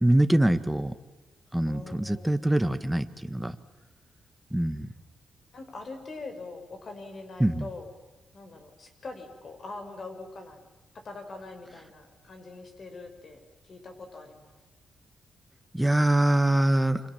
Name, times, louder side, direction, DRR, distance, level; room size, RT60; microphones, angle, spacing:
voice 1, 0.0-0.9 1.5-3.5 4.5-4.9 7.4-7.7 15.7-17.0, right 1 dB, 5° right, 10 dB, 1.6 m, -24 dB
voice 2, 1.7-2.3 5.5-7.9 8.3-10.7 11.0-13.4 13.6-14.6, left 3 dB, 50° left, 6 dB, 5.4 m, -43 dB
28.5 x 26.0 x 7.4 m, 1.2 s
cardioid pair, 85°, 0 cm